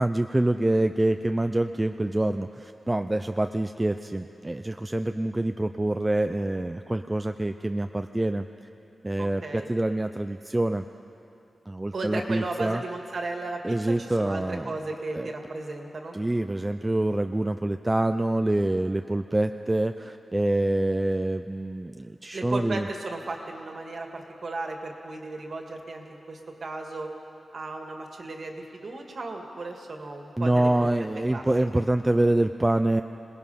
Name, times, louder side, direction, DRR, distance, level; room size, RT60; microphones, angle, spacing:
voice 1, 0.0-8.5 9.0-10.8 11.7-12.8 13.6-14.7 15.1-15.3 16.1-22.9 30.4-33.0, right 1 dB, 15° right, 8 dB, 0.4 m, -26 dB
voice 2, 9.2-9.7 11.9-16.1 22.3-27.1 27.5-30.9 31.3-31.5, right 2 dB, 45° right, 2 dB, 1.9 m, -35 dB
26.0 x 19.0 x 5.7 m, 2.8 s
wide cardioid pair, 175°, 0 cm